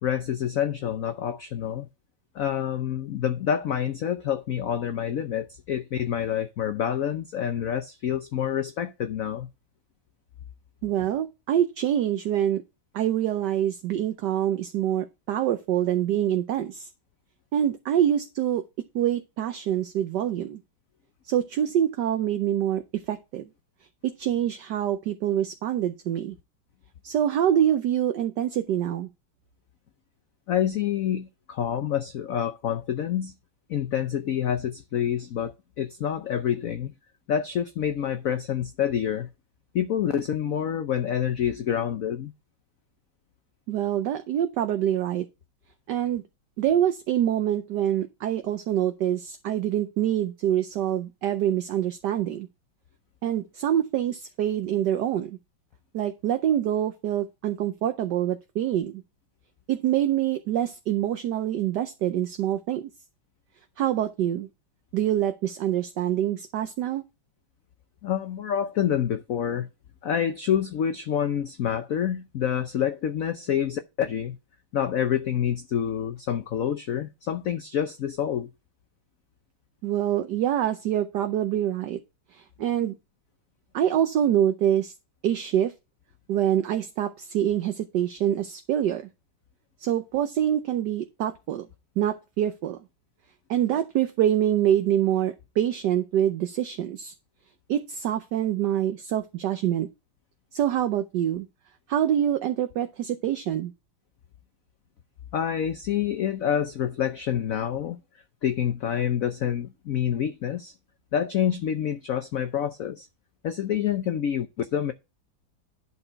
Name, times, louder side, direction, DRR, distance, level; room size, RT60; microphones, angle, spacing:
voice 1, 0.0-1.9 2.3-9.5 30.5-33.3 33.7-36.9 37.3-39.3 39.7-42.3 68.0-69.7 70.0-74.4 74.7-78.5 105.3-108.0 108.4-110.7 111.1-113.1 113.4-114.9, left 9 dB, 65° left, 0.8 m, -27 dB
voice 2, 10.8-12.6 12.9-16.9 17.5-18.6 18.9-20.6 21.2-23.5 24.0-26.3 27.0-29.1 43.7-45.2 45.9-46.2 46.6-52.5 53.2-55.4 55.9-59.0 59.7-62.9 63.8-64.5 64.9-67.0 79.8-82.0 82.3-82.9 83.7-84.9 85.2-85.7 86.3-89.0 89.8-91.7 92.0-92.8 93.5-97.1 97.7-99.9 100.5-101.5 101.9-103.7, right 11 dB, 65° right, 1.2 m, -25 dB
11.0 x 4.3 x 4.6 m
omnidirectional pair, 2.2 m